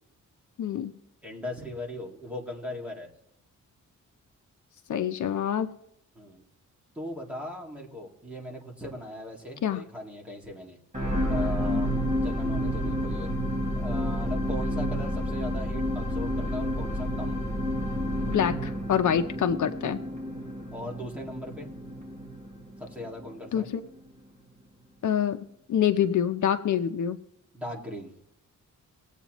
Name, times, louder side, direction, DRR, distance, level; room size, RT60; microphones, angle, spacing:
voice 1, 0.6-0.9 4.9-5.7 9.6-9.8 11.7-11.8 18.3-20.0 23.5-23.8 25.0-25.4 25.7-27.2, left 9 dB, 65° left, 8 dB, 0.7 m, -26 dB
voice 2, 1.2-3.1 6.1-6.4 6.9-10.8 11.3-13.3 13.8-17.4 20.7-21.7 22.8-23.7 27.5-28.1, left 1 dB, 5° right, -2 dB, 2.0 m, -39 dB
sound 1, 10.9-23.3 23.9-24.0, equal, 25° right, 3.3 m, -30 dB
20.0 x 8.2 x 3.0 m, 0.79 s
wide cardioid pair, 165°, 31 cm